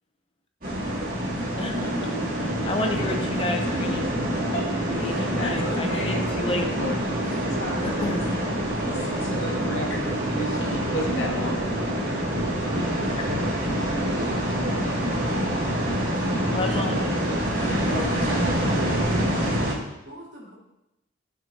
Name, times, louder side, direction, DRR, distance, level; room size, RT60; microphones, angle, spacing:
sound 1, 0.6-19.7, equal, 45° right, 2.2 m, -26 dB
voice 1, 1.6-4.1 4.9-6.7 7.8-8.3 13.2-13.3 16.5-17.1 17.9-18.5, left 2 dB, 25° left, 3 dB, 0.6 m, -31 dB
voice 2, 5.0-8.2 8.8-10.0 10.3-11.6, equal, 70° left, -4 dB, 2.2 m, -34 dB
voice 3, 17.5-18.3 19.2-19.5 20.0-20.5, equal, 70° right, -5 dB, 2.9 m, -40 dB
15.0 x 6.1 x 2.8 m, 0.92 s
head